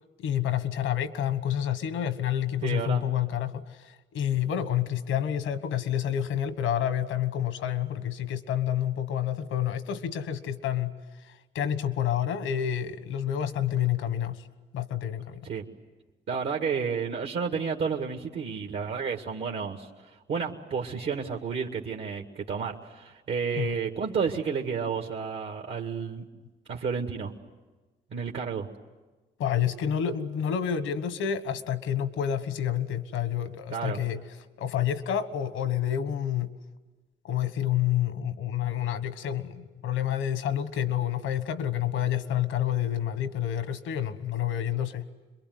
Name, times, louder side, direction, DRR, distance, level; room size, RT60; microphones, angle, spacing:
voice 1, 0.2-10.9 11.2-14.4 14.7-15.5 23.6-23.8 29.4-34.2 34.6-36.5 37.2-45.0, left 10 dB, 85° left, 1.3 m, -29 dB
voice 2, 2.6-3.0 15.4-15.6 16.3-26.2 26.7-27.3 28.1-28.7 33.7-34.0, right 6 dB, 70° right, 2.0 m, -31 dB
27.0 x 22.5 x 9.5 m
supercardioid pair, 65°, 20 cm